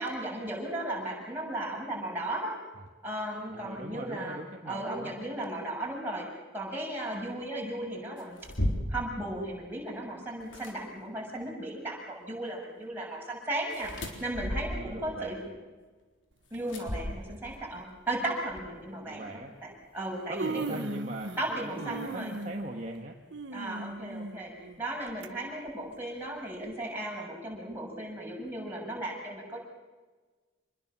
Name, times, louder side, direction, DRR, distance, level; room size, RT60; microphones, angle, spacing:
voice 1, 0.0-2.6 3.0-4.4 4.7-6.2 6.5-8.4 8.9-13.9 14.2-15.5 16.5-19.2 19.6-20.8 21.4-22.3 23.5-29.6, right 1 dB, 10° right, -3 dB, 7.5 m, -36 dB
voice 2, 3.5-5.1 14.7-15.5 18.8-19.5 20.3-23.2, right 2 dB, 35° right, 1 dB, 1.6 m, -41 dB
sound 1, 8.2-9.1 10.4-10.7 13.7-15.0 16.7-17.6, left 1 dB, 70° left, 3.8 m, -34 dB
Human voice, 16.5-16.8 17.8-17.9 18.5-18.7 19.7-19.8 20.1-21.5 21.8-25.3 25.7-25.8 26.6-26.7, right 2 dB, 65° right, 1.2 m, -38 dB
27.0 x 21.0 x 7.4 m, 1.3 s
head